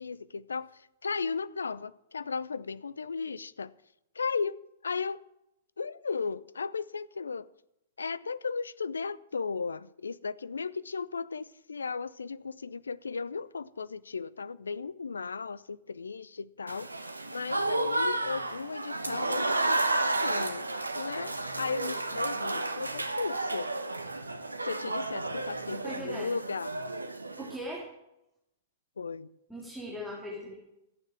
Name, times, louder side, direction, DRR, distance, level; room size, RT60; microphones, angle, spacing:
voice 1, 0.0-3.7 4.1-5.2 5.8-7.5 8.0-16.9 17.3-20.7 20.9-23.7 24.6-26.7 29.0-29.3, left 5 dB, 80° left, 0.6 m, -36 dB
Applause / Crowd, 16.7-27.6, right 2 dB, 90° right, 1.2 m, -32 dB
voice 2, 25.8-26.3 27.4-27.9 29.5-30.5, equal, ahead, 3.4 m, -39 dB
14.5 x 9.3 x 7.4 m
figure-of-eight pair, 105°, 0 cm